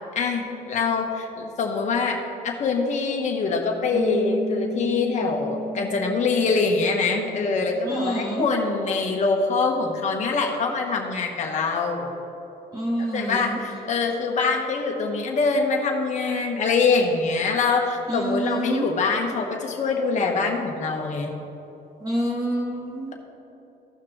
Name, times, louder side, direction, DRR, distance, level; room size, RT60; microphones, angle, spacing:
voice 1, 0.1-2.2 2.4-12.1 13.1-21.3, left 4 dB, 45° left, 1 dB, 1.4 m, -24 dB
Piano, 3.9-9.0, right 1 dB, 65° right, 1.2 m, -35 dB
voice 2, 7.9-8.4 12.7-13.4 18.1-18.8 22.0-23.1, right 1 dB, 20° right, -3 dB, 1.3 m, -27 dB
15.5 x 5.9 x 3.2 m, 3.0 s
cardioid pair, 110°, 17 cm